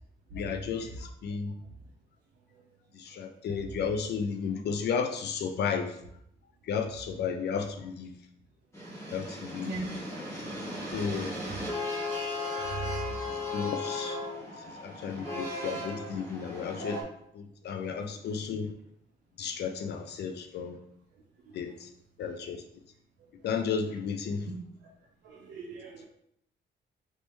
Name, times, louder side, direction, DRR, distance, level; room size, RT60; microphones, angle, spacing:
voice 1, 0.3-1.5 3.0-6.0 6.7-8.1 9.1-9.7 10.2-10.3 10.9-11.3 13.3-14.2 14.8-17.0 17.3-18.7 19.4-20.8 21.5-21.9 22.2-22.6 23.4-24.5, left 6 dB, 70° left, 6 dB, 0.4 m, -33 dB
sound 1, 8.7-17.0, left 2 dB, 15° left, 1.3 m, -36 dB
voice 2, 14.5-15.0 25.2-26.1, right 1 dB, 90° right, -2 dB, 0.7 m, -40 dB
4.1 x 3.3 x 3.0 m, 0.73 s
cardioid pair, 135°, 18 cm